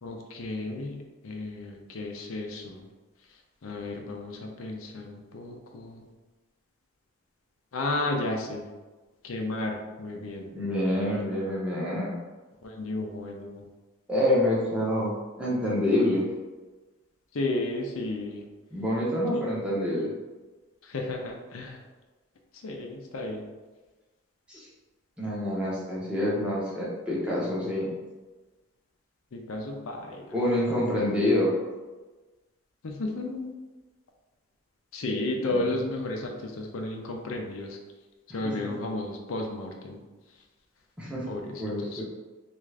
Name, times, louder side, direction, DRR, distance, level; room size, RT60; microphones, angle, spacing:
voice 1, 0.0-2.9 3.6-6.1 7.7-8.6 9.2-10.5 10.8-11.1 12.6-13.6 17.3-18.4 20.9-21.8 22.6-23.4 29.3-30.4 32.8-33.5 34.9-37.8 38.3-40.0 41.3-41.5 41.8-42.0, left 2 dB, 85° left, 2 dB, 0.5 m, -33 dB
voice 2, 10.5-12.2 14.1-16.3 18.7-20.1 24.5-24.7 25.2-27.9 30.3-31.5 35.4-35.7 38.3-38.7 41.0-41.2 41.6-42.0, left 1 dB, 5° right, -7 dB, 0.8 m, -27 dB
3.6 x 2.5 x 3.2 m, 1.2 s
head